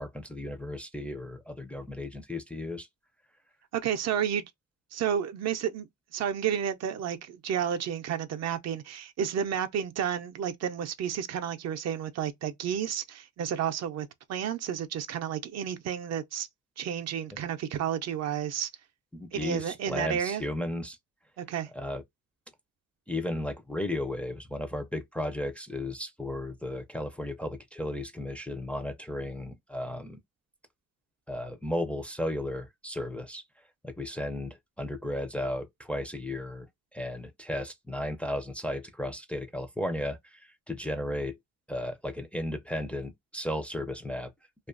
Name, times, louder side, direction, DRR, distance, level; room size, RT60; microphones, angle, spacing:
voice 1, 0.0-2.9 19.1-21.0 21.7-22.0 23.1-30.2 31.3-33.4 33.8-36.7 36.9-41.4 41.7-44.3, left 1 dB, 5° left, 0.4 m, -34 dB
voice 2, 3.7-4.4 4.9-16.5 16.8-18.7 19.3-20.4 21.4-21.7, right 9 dB, 60° right, 0.5 m, -31 dB
2.5 x 2.3 x 2.4 m
cardioid pair, 90°, 30 cm